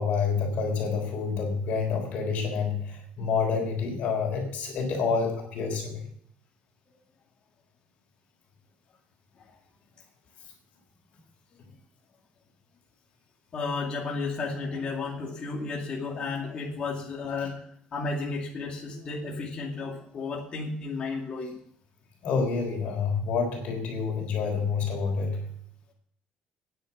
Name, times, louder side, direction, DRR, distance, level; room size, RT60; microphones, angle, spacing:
voice 1, 0.0-6.1 22.2-25.5, left 5 dB, 60° left, 2 dB, 3.5 m, -28 dB
voice 2, 13.5-17.6 17.9-21.5, left 4 dB, 30° left, -2 dB, 2.3 m, -33 dB
9.9 x 9.8 x 7.4 m, 0.66 s
cardioid pair, 165°, 3 cm